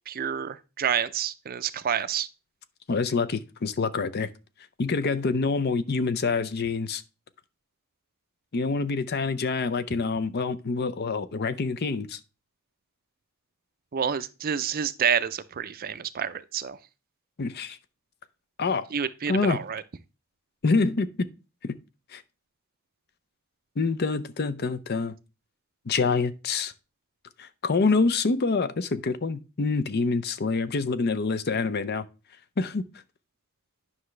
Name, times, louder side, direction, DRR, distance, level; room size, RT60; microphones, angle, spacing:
voice 1, 0.1-2.3 13.9-16.8 18.9-19.8, right 8 dB, 40° right, 0.5 m, -28 dB
voice 2, 2.9-4.3 4.8-7.0 8.5-12.2 17.4-17.8 18.6-18.9 19.3-19.6 20.6-21.3 21.6-21.7 22.1-22.2 23.8-25.1 25.9-26.7 27.4-32.1 32.6-32.8, left 4 dB, 45° left, 0.6 m, -26 dB
9.7 x 5.8 x 3.2 m
head